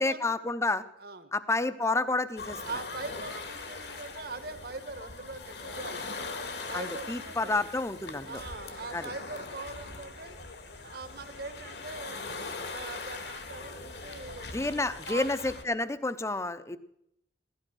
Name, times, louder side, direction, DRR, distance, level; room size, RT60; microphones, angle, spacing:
voice 1, 0.0-0.8 1.3-2.6 6.7-8.4 8.9-9.1 14.5-16.8, left 2 dB, 15° left, 13 dB, 0.7 m, -30 dB
voice 2, 1.0-1.3 2.6-6.3 6.7-7.6 8.2-10.4 10.8-12.4 12.6-14.5 15.1-15.3, right 3 dB, 60° right, 10 dB, 1.4 m, -42 dB
sound 1, 2.4-15.6, left 3 dB, 65° left, 1.9 m, -41 dB
16.0 x 12.5 x 6.3 m, 0.76 s
head